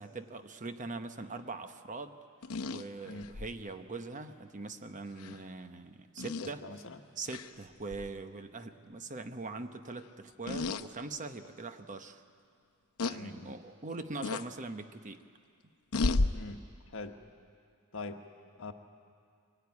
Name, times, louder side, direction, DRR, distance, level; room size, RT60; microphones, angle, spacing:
voice 1, 0.0-2.2 2.7-6.6 7.2-12.2 13.0-15.2, right 3 dB, 35° right, 8 dB, 0.9 m, -42 dB
sound 1, 2.4-3.5 5.2-5.4 6.2-6.5 7.3-7.5 7.9-8.1 10.5-10.9 11.4-11.5 13.0-13.2 14.2-14.5 15.9-16.3, left 3 dB, 90° left, 0.7 m, -32 dB
voice 2, 6.4-7.0 13.1-13.5 16.3-16.6 16.9-17.2 17.9-18.2 18.6-18.7, left 3 dB, 65° left, 6 dB, 1.3 m, -43 dB
23.5 x 18.0 x 9.6 m, 2.3 s
head